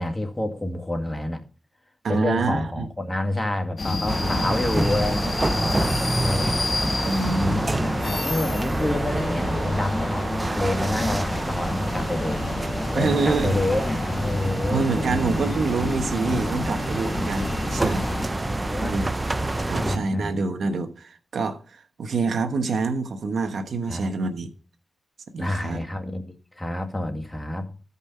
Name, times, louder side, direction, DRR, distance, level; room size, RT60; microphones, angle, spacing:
voice 1, 0.0-1.4 2.1-6.6 7.3-12.4 12.9-15.6 16.4-16.8 17.7-19.0 19.7-20.3 23.9-24.1 25.4-27.7, left 1 dB, 15° left, 2.1 m, -28 dB
voice 2, 2.0-2.9 7.0-7.6 12.9-13.6 14.7-18.1 18.8-19.1 19.7-24.5 25.3-25.8, right 4 dB, 80° right, 1.2 m, -26 dB
sound 1, 3.8-18.3, left 3 dB, 55° left, 1.3 m, -30 dB
sound 2, 4.1-20.0, right 2 dB, 30° right, 0.7 m, -27 dB
14.5 x 5.5 x 5.5 m
cardioid pair, 50°, 0 cm